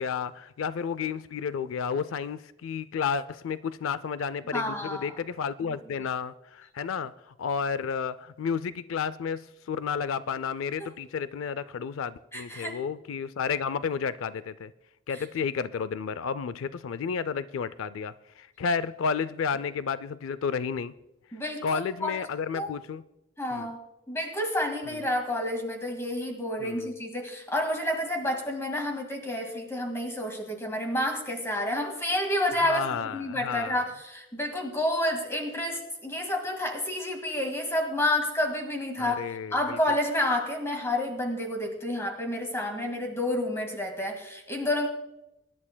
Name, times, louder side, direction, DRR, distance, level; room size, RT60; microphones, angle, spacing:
voice 1, 0.0-7.1 7.4-14.7 15.1-20.9 21.6-23.0 23.5-23.7 24.9-25.0 26.6-26.9 32.6-33.8 39.0-39.8, left 6 dB, 85° left, 0.4 m, -31 dB
voice 2, 4.5-5.2 5.6-6.1 10.8-10.9 12.3-12.8 15.1-15.2 21.3-22.2 22.5-22.7 23.4-23.8 24.1-39.2 39.5-44.9, left 1 dB, 15° left, 1.9 m, -30 dB
23.5 x 11.0 x 2.2 m
head